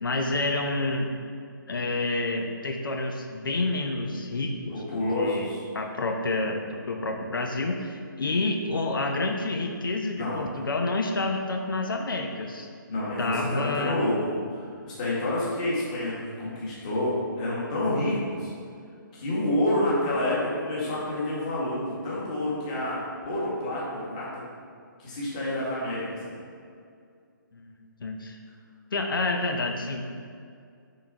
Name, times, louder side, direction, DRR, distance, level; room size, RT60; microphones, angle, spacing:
voice 1, 0.0-1.1 1.7-5.5 5.7-12.7 13.2-14.0 27.5-28.4 28.9-30.0, left 2 dB, 80° left, 3 dB, 0.9 m, -29 dB
voice 2, 4.7-5.6 10.2-10.4 12.9-14.4 14.6-18.5 19.1-24.4 25.0-26.4, left 1 dB, 20° left, -7 dB, 1.7 m, -28 dB
9.4 x 4.0 x 4.8 m, 2.3 s
hypercardioid pair, 175°, 11 cm